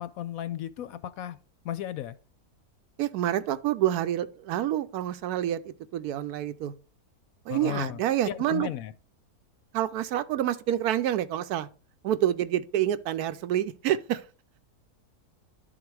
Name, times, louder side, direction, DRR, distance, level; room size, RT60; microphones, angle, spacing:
voice 1, 0.0-1.4 1.6-2.2 7.5-8.9, left 11 dB, 70° left, 1.0 m, -35 dB
voice 2, 3.0-6.7 7.5-8.7 9.7-11.7 12.0-14.2, right 11 dB, 80° right, 1.1 m, -28 dB
10.5 x 4.0 x 4.7 m
omnidirectional pair, 1.6 m